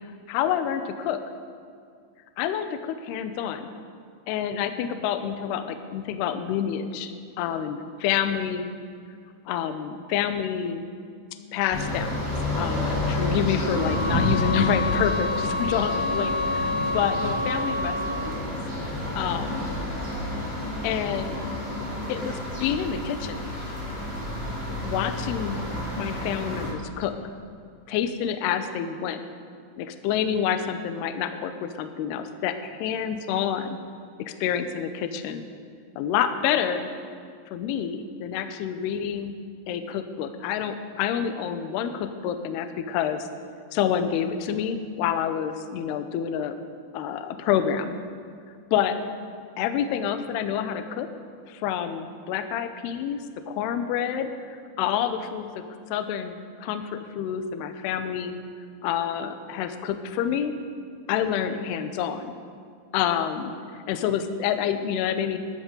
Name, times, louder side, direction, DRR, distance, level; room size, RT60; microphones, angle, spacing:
voice 1, 0.3-1.2 2.4-3.7 4.3-7.1 7.4-8.7 9.5-10.9 11.5-18.0 18.2-18.6 19.2-19.8 20.8-21.4 22.1-23.4 24.8-25.6 26.0-27.2 27.9-29.2 29.8-33.8 34.2-35.5 36.0-36.9 37.5-39.3 39.7-43.3 43.7-46.6 46.9-48.0 48.7-49.0 49.6-51.1 51.5-55.7 55.9-58.4 58.8-60.6 61.1-62.3 62.9-65.4, left 9 dB, 85° left, 9 dB, 2.3 m, -28 dB
sound 1, 11.7-26.7, left 1 dB, 15° left, 3.6 m, -30 dB
sound 2, 13.7-18.4, left 2 dB, 35° left, 5.1 m, -29 dB
20.0 x 12.5 x 3.9 m, 2.2 s
omnidirectional pair, 5.7 m